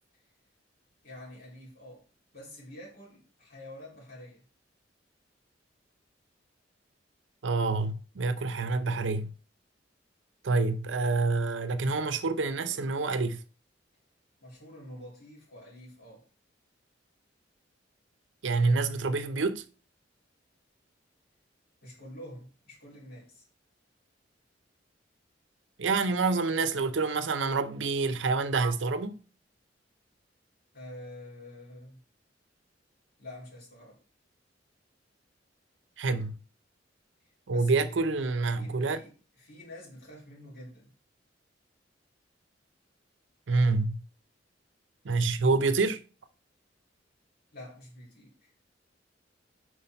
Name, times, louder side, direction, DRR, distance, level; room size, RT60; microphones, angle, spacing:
voice 1, 1.0-2.0 2.3-4.4 14.4-16.3 21.8-23.5 30.7-32.0 33.2-34.0 37.5-38.0 38.5-40.9 47.5-48.5, left 1 dB, 55° left, 3.3 m, -47 dB
voice 2, 7.4-9.3 10.4-13.4 18.4-19.6 25.8-29.1 36.0-36.4 37.5-39.0 43.5-44.0 45.0-46.0, right 3 dB, 85° right, 0.6 m, -27 dB
5.6 x 4.7 x 4.3 m
head